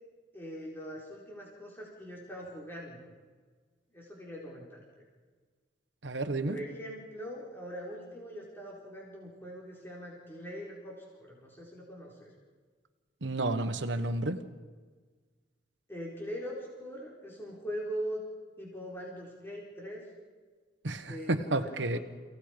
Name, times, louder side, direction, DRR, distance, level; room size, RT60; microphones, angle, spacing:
voice 1, 0.3-3.1 3.9-4.8 6.4-12.3 15.9-18.2 18.6-20.1 21.0-22.0, equal, 10° left, -4 dB, 4.3 m, -41 dB
voice 2, 6.0-6.6 13.2-14.4 20.8-22.0, right 2 dB, 75° right, 8 dB, 1.4 m, -31 dB
29.5 x 17.5 x 5.2 m, 1.5 s
head